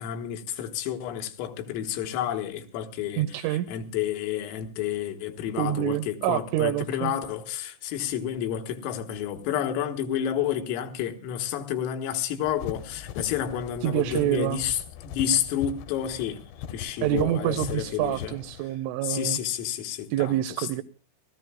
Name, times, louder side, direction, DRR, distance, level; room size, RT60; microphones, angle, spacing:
voice 1, 0.0-18.4 19.0-20.7, left 10 dB, 90° left, 4.0 m, -30 dB
voice 2, 3.2-3.7 5.6-7.1 13.8-14.6 17.0-19.4 20.1-20.8, right 14 dB, 80° right, 3.3 m, -27 dB
sound 1, 12.4-18.6, left 9 dB, 75° left, 2.7 m, -40 dB
30.0 x 14.5 x 2.2 m
omnidirectional pair, 5.8 m